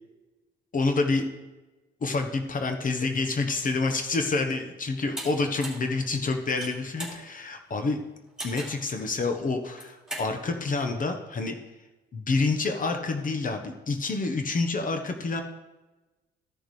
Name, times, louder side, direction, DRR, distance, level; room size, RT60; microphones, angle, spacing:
voice 1, 0.7-1.3 2.0-8.0 8.4-11.6 12.1-15.4, left 3 dB, 45° left, 5 dB, 1.1 m, -28 dB
sound 1, 5.2-5.3 5.6-5.9 6.4-7.2 8.4-8.8 9.6-10.3, right 1 dB, 5° right, 2.9 m, -37 dB
13.5 x 6.4 x 3.2 m, 1.1 s
cardioid pair, 90°, 20 cm